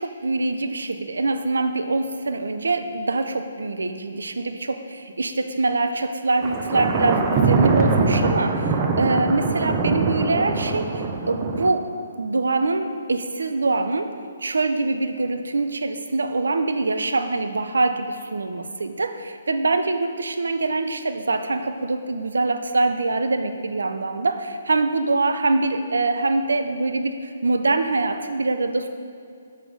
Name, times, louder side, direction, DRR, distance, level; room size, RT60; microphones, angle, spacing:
voice 1, 0.0-11.9 12.2-14.1 14.4-28.9, right 3 dB, 75° right, 7 dB, 0.6 m, -24 dB
Thunder, 6.4-11.7, right 4 dB, 25° right, 0.6 m, -22 dB
6.8 x 4.1 x 6.3 m, 2.3 s
figure-of-eight pair, 135°, 0 cm